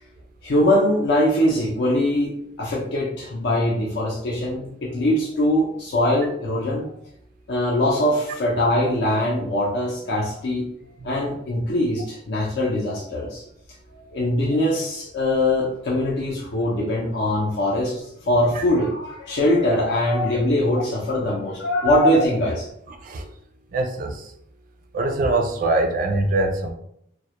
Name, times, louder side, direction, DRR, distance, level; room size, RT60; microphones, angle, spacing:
voice 1, 0.4-6.9 7.5-10.7 11.0-13.4 13.9-22.7, left 1 dB, 55° left, -4 dB, 0.4 m, -22 dB
voice 2, 23.7-24.3 24.9-26.7, right 2 dB, 40° right, 4 dB, 0.3 m, -23 dB
2.2 x 2.0 x 2.8 m, 0.71 s
head